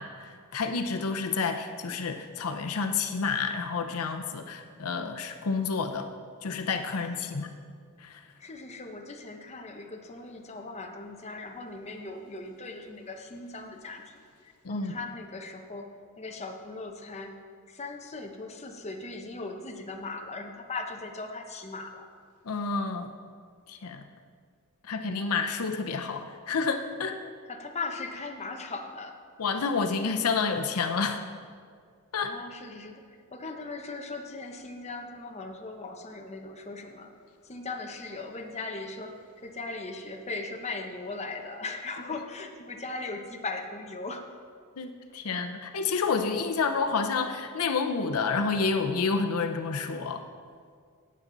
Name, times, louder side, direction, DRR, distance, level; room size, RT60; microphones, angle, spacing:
voice 1, 0.0-6.1 6.4-7.5 8.0-8.2 14.6-15.0 22.4-23.1 23.7-24.0 24.8-27.2 29.4-31.2 32.1-32.3 44.8-50.2, left 4 dB, 80° left, 6 dB, 0.7 m, -29 dB
voice 2, 6.9-7.3 8.4-14.3 14.7-17.3 17.7-22.1 27.4-29.2 32.2-37.1 37.4-44.2, left 3 dB, 30° left, 3 dB, 0.9 m, -39 dB
17.0 x 7.4 x 4.0 m, 2.1 s
head